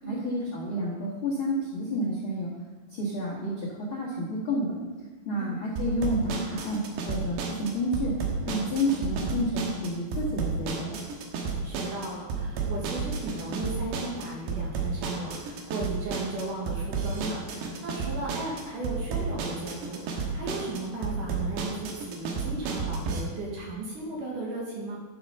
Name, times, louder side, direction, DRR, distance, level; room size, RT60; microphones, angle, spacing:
voice 1, 0.0-2.5 2.9-4.8 5.2-8.1 8.4-11.0, equal, 55° left, -5 dB, 1.5 m, -30 dB
sound 1, 5.8-23.2, right 4 dB, 75° right, 3.2 m, -32 dB
voice 2, 11.4-25.0, right 2 dB, 55° right, -3 dB, 2.8 m, -36 dB
10.5 x 8.0 x 5.6 m, 1.3 s
omnidirectional pair, 5.1 m